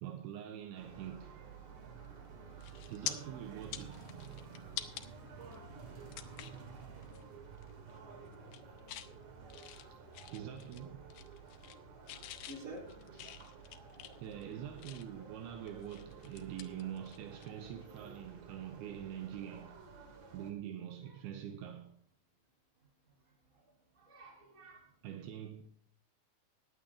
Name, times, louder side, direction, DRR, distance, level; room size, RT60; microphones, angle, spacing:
voice 1, 0.0-1.4 2.9-4.0 9.9-10.0 10.3-11.1 13.1-13.4 14.2-19.8 20.3-21.9 25.0-25.6, right 10 dB, 80° right, 2.6 m, -45 dB
sound 1, 0.7-20.5, right 5 dB, 55° right, 2.9 m, -52 dB
sound 2, 2.0-2.3 2.6-3.1 3.6-5.1 5.5-5.6 6.1-6.6 7.0-7.2 7.5-8.0 8.3-9.1 9.5-10.8 11.1-11.8 12.1-15.2 15.7-17.5 17.8-18.0 19.9-20.0, left 12 dB, 75° left, 2.3 m, -46 dB
voice 2, 12.5-13.3 21.0-21.2 24.0-24.9, right 1 dB, 20° right, 3.2 m, -50 dB
15.5 x 10.0 x 3.6 m
omnidirectional pair, 4.9 m